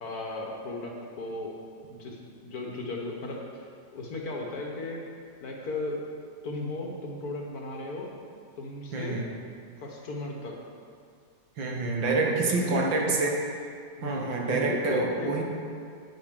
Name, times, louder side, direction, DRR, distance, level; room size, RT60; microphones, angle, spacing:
voice 1, 0.0-1.5 1.9-2.2 2.4-3.7 3.9-5.0 5.4-6.0 6.4-8.1 8.6-9.2 9.8-10.6 12.0-13.1 14.0-15.3, left 2 dB, 55° left, -1 dB, 1.6 m, -36 dB
voice 2, 8.9-9.3 11.6-13.4 14.0-15.4, right 3 dB, 85° right, -1 dB, 2.0 m, -27 dB
9.7 x 9.2 x 3.7 m, 2.3 s
omnidirectional pair, 2.0 m